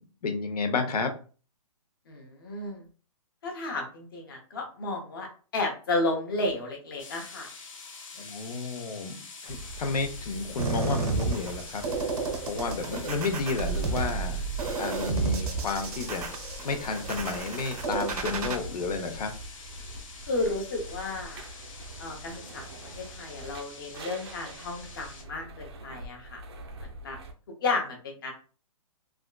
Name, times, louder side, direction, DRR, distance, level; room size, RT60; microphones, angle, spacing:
voice 1, 0.2-1.1 8.2-9.2 9.4-11.8 12.5-14.4 14.8-16.3 16.6-19.3, left 4 dB, 85° left, 6 dB, 0.8 m, -31 dB
voice 2, 2.1-2.9 3.4-7.5 20.3-21.4 22.0-26.4 26.8-27.2 27.6-28.3, left 2 dB, 35° left, 2 dB, 0.7 m, -32 dB
sound 1, 7.0-25.2, left 4 dB, 60° left, 0.9 m, -46 dB
sound 2, 9.5-27.3, right 1 dB, 45° right, 0.5 m, -44 dB
sound 3, 10.6-18.6, right 4 dB, 75° right, 0.7 m, -31 dB
3.4 x 2.3 x 2.2 m, 0.38 s
hypercardioid pair, 170°, 19 cm